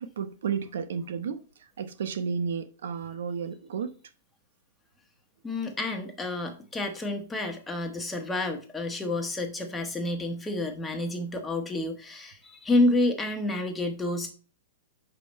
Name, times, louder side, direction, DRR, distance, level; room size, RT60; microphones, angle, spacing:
voice 1, 0.0-1.4 1.8-3.9, right 6 dB, 75° right, 0.8 m, -32 dB
voice 2, 5.4-14.3, left 2 dB, 10° left, 1.2 m, -29 dB
5.7 x 5.1 x 4.1 m
hypercardioid pair, 120°, 0 cm